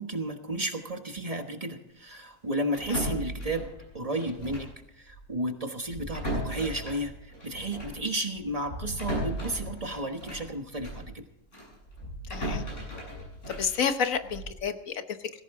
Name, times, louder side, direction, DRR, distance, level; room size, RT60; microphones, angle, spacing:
voice 1, 0.0-3.7 3.9-4.7 5.0-11.2, right 1 dB, 30° right, 5 dB, 1.3 m, -33 dB
sound 1, 2.7-4.8 5.1-5.3 5.8-11.1 11.5-14.6, right 1 dB, 65° left, 8.6 m, -36 dB
voice 2, 12.2-12.6 13.5-15.3, left 7 dB, 85° left, 9 dB, 1.5 m, -30 dB
19.0 x 16.5 x 3.7 m, 0.85 s
omnidirectional pair, 1.4 m